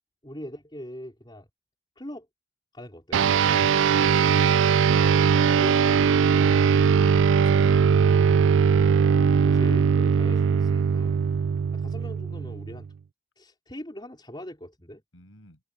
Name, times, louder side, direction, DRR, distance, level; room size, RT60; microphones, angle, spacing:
voice 1, 0.2-1.5 2.0-2.3 2.7-3.2 5.6-6.6 9.5-11.2 11.7-12.9 13.4-15.0, equal, 20° left, 4.8 m, -41 dB
sound 1, 3.1-12.9, right 6 dB, 65° right, 0.4 m, -20 dB
voice 2, 3.4-4.6 5.3-5.8 6.8-7.1 7.4-9.0 10.0-10.2 11.1-11.3 15.1-15.6, left 2 dB, 75° left, 7.4 m, -48 dB
open air
head